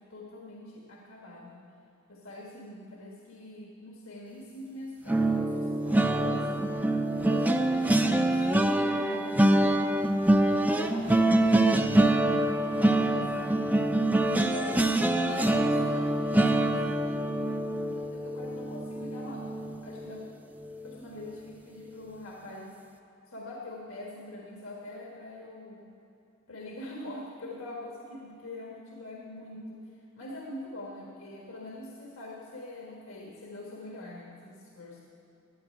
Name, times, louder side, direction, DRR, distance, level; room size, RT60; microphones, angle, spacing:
voice 1, 0.0-1.6 2.1-6.7 7.1-10.0 10.5-11.1 11.6-13.6 14.2-17.1 17.8-19.5 19.8-20.2 20.8-22.7 23.3-25.9 26.5-29.8 30.2-35.0, left 1 dB, 75° left, -1 dB, 1.5 m, -43 dB
sound 1, 5.1-20.2 20.6-20.9 21.2-21.4, right 1 dB, 10° right, 0.5 m, -25 dB
12.5 x 8.8 x 8.5 m, 2.8 s
head